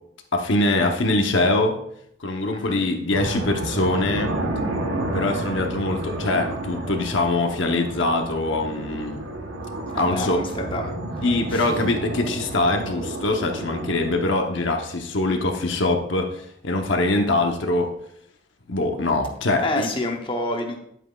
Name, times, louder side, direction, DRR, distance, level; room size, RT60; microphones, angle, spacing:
voice 1, 0.3-1.7 2.2-4.3 5.1-9.2 10.0-10.4 11.2-17.9 18.7-19.9, left 2 dB, 65° left, 3 dB, 0.9 m, -23 dB
sound 1, 3.1-14.2, right 2 dB, 90° right, 1.2 m, -31 dB
voice 2, 9.9-10.9 11.5-11.7 19.6-20.8, left 2 dB, 25° left, 2 dB, 0.8 m, -28 dB
9.8 x 8.1 x 2.4 m, 0.72 s
head